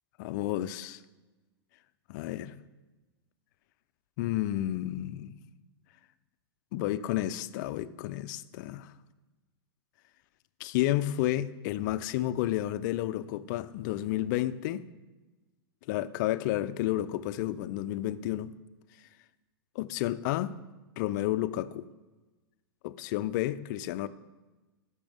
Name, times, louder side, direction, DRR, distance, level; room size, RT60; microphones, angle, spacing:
voice 1, 0.2-1.0 2.1-2.6 4.2-5.3 6.7-8.9 10.6-14.8 15.9-18.5 19.8-20.6 21.0-21.9 22.8-24.1, left 14 dB, 50° left, 14 dB, 0.4 m, -31 dB
12.0 x 6.7 x 3.5 m, 1.2 s
hypercardioid pair, 115°, 13 cm